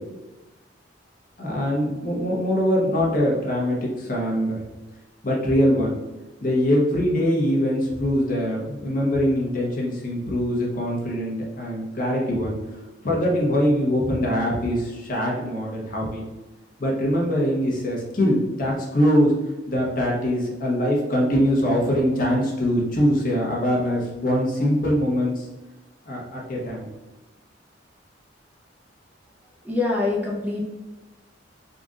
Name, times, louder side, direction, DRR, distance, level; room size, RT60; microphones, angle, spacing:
voice 1, 1.4-4.6 5.2-6.0 6.4-12.6 13.0-16.2 16.8-19.3 19.7-25.5 26.1-26.9, equal, 45° left, -3 dB, 1.0 m, -23 dB
voice 2, 29.6-30.6, left 3 dB, 10° right, -4 dB, 0.7 m, -24 dB
3.9 x 2.6 x 3.6 m, 1.1 s
head